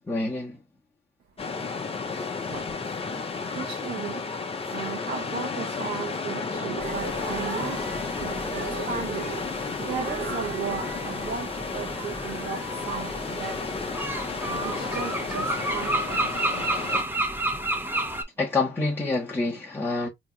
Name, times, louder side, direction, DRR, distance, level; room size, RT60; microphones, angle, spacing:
voice 1, 0.1-0.6 18.4-20.1, left 3 dB, 10° left, 1.1 m, -27 dB
sound 1, 1.4-17.0, left 4 dB, 30° left, 0.8 m, -32 dB
voice 2, 3.5-13.8 14.1-16.7, right 6 dB, 55° right, 1.0 m, -35 dB
sound 2, 6.8-18.2, right 1 dB, 10° right, 0.8 m, -32 dB
3.4 x 3.0 x 2.4 m
cardioid pair, 90°, 20 cm